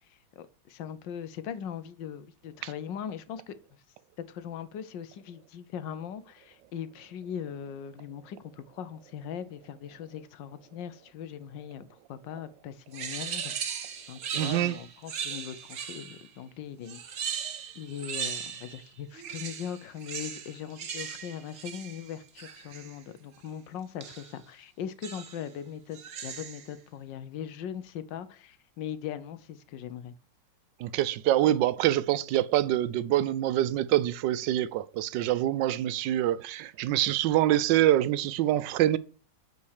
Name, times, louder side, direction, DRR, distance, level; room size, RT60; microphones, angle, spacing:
voice 1, 0.1-3.8 4.3-13.5 14.1-17.2 17.7-30.1, left 8 dB, 90° left, 1.5 m, -40 dB
sound 1, 12.9-16.3 16.8-18.8 19.1-23.0 24.0-24.4 25.0-25.5 25.9-26.7, right 7 dB, 55° right, 1.3 m, -38 dB
voice 2, 14.3-14.8 30.8-39.0, right 13 dB, 85° right, 1.3 m, -25 dB
8.5 x 4.4 x 6.4 m
omnidirectional pair, 1.9 m